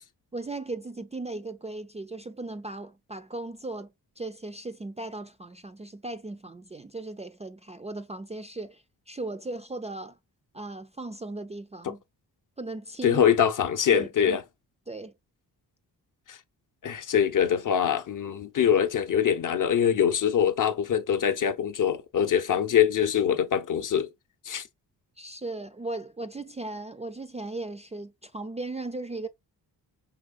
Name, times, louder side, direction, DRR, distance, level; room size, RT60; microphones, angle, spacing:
voice 1, 0.3-10.2 10.5-12.0 12.6-13.2 13.9-14.4 14.9-15.1 25.2-29.3, right 2 dB, 15° right, 0.4 m, -37 dB
voice 2, 13.0-14.4 16.3-16.4 16.8-24.1 24.5-24.6, left 8 dB, 50° left, 0.7 m, -24 dB
5.5 x 3.2 x 2.4 m
supercardioid pair, 50°, 42 cm